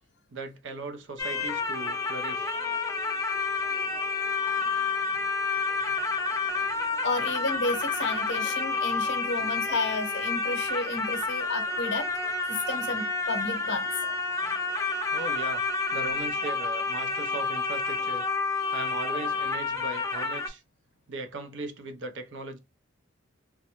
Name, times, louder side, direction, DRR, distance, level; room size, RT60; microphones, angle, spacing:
voice 1, 0.3-2.5 14.4-14.5 15.1-15.6 15.9-18.3 18.7-20.6 21.1-22.6, right 3 dB, 60° right, 0.6 m, -38 dB
sound 1, 1.2-20.5, left 3 dB, 15° left, 0.5 m, -29 dB
voice 2, 7.0-12.1 12.5-14.0 14.4-14.5 18.7-18.8, left 3 dB, 60° left, 0.7 m, -32 dB
3.5 x 2.1 x 2.9 m
head